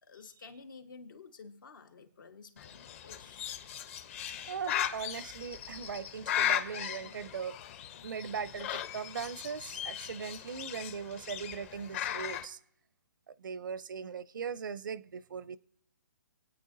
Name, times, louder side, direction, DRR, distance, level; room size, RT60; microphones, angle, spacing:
voice 1, 0.0-3.7, left 4 dB, 75° left, 1.7 m, -52 dB
Bird, 2.6-12.5, left 10 dB, 40° left, 0.9 m, -37 dB
voice 2, 4.5-7.6 8.0-12.6 13.3-15.6, right 6 dB, 70° right, 0.6 m, -39 dB
27.0 x 9.2 x 2.7 m
hypercardioid pair, 140°, 11 cm